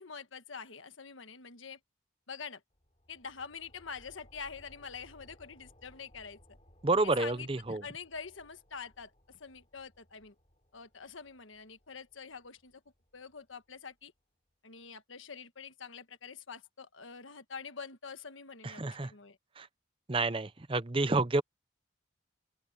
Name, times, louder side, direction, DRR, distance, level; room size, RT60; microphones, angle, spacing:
voice 1, 0.0-1.8 2.3-2.6 3.1-6.6 7.0-10.3 10.7-12.8 13.1-14.1 14.6-19.4, left 5 dB, 80° left, 1.4 m, -46 dB
sound 1, 2.7-13.9, equal, 30° left, 4.7 m, -63 dB
voice 2, 6.8-7.8 18.6-19.1 19.6-19.7 20.1-21.4, right 3 dB, 25° right, 0.7 m, -29 dB
open air
head